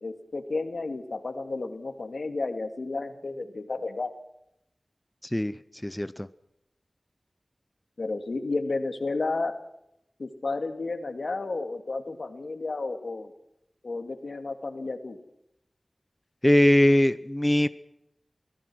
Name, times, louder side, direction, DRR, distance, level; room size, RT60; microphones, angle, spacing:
voice 1, 0.0-4.1 8.0-9.5 10.2-13.3 13.8-15.2, left 3 dB, 75° left, 8 dB, 2.3 m, -32 dB
voice 2, 5.8-6.3 16.4-17.7, left 1 dB, 15° left, 14 dB, 0.7 m, -21 dB
24.0 x 17.0 x 6.3 m, 0.80 s
wide cardioid pair, 75°, 0 cm